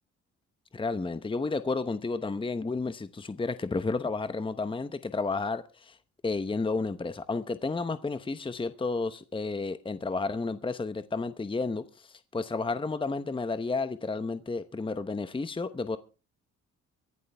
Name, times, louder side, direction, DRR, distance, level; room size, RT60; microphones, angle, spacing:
voice 1, 0.7-6.0 6.2-16.0, left 3 dB, 15° left, 0.9 m, -31 dB
24.0 x 11.0 x 3.4 m
cardioid pair, 90°, 30 cm